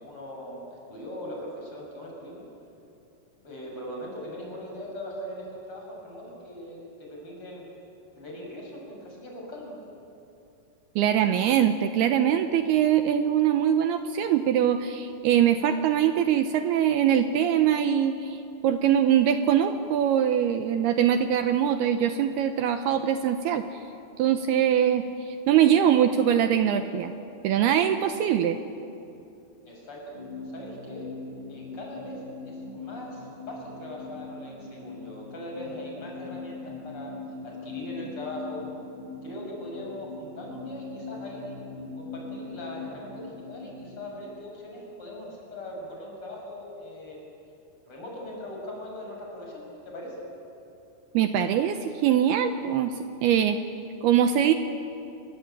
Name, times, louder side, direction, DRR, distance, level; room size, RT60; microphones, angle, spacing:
voice 1, 0.0-2.4 3.4-7.6 8.2-9.8 29.7-30.1 30.5-31.1 31.5-37.1 37.4-38.6 39.2-41.6 42.0-47.2 47.9-50.2, left 1 dB, 30° left, -2 dB, 6.9 m, -40 dB
voice 2, 11.0-23.6 24.2-27.1 27.4-28.6 51.1-52.9 53.2-53.6 54.0-54.5, right 9 dB, 75° right, 8 dB, 2.6 m, -22 dB
sound 1, 30.1-44.2, left 3 dB, 65° left, 5.1 m, -41 dB
29.0 x 21.5 x 8.9 m, 2.7 s
omnidirectional pair, 5.1 m